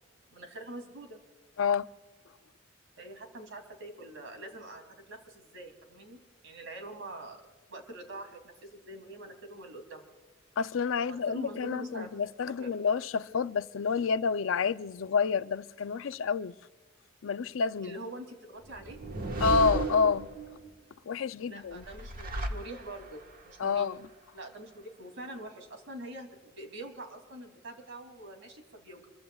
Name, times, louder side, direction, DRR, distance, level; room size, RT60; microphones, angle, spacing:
voice 1, 0.3-1.2 3.0-7.4 7.7-10.0 10.9-12.1 12.5-12.8 17.8-19.2 21.5-23.9 24.3-29.1, right 1 dB, 75° right, 2.9 m, -44 dB
voice 2, 1.6-1.9 10.6-16.5 17.2-17.9 19.4-20.3 21.1-21.8 23.6-24.1, left 5 dB, 90° left, 0.5 m, -29 dB
sound 1, 18.7-20.7 21.7-23.2, right 2 dB, 50° right, 1.4 m, -34 dB
27.0 x 22.5 x 2.4 m
head